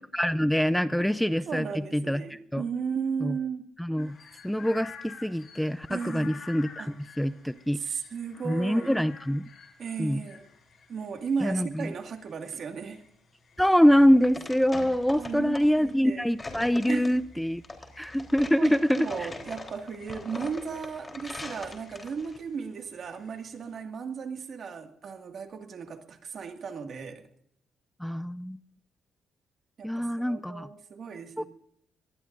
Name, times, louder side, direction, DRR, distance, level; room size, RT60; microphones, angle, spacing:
voice 1, 0.1-1.7 1.9-2.2 2.5-2.6 3.2-3.4 3.8-4.2 4.4-7.8 8.4-9.4 10.0-10.2 11.4-11.9 13.6-17.6 18.0-19.3 28.0-28.6 29.8-30.7 31.4-31.5, equal, 5° left, 14 dB, 0.5 m, -25 dB
voice 2, 1.5-3.7 5.9-6.4 6.8-6.9 7.7-9.0 9.8-10.5 10.9-13.0 15.2-16.2 16.9-17.1 18.4-27.3 29.8-31.4, right 6 dB, 55° right, 5 dB, 2.1 m, -35 dB
sound 1, 4.0-23.7, left 5 dB, 60° left, 7.5 m, -52 dB
sound 2, 13.9-22.4, left 2 dB, 25° left, 3.7 m, -42 dB
24.0 x 19.0 x 2.6 m, 0.70 s
cardioid pair, 90°, 0 cm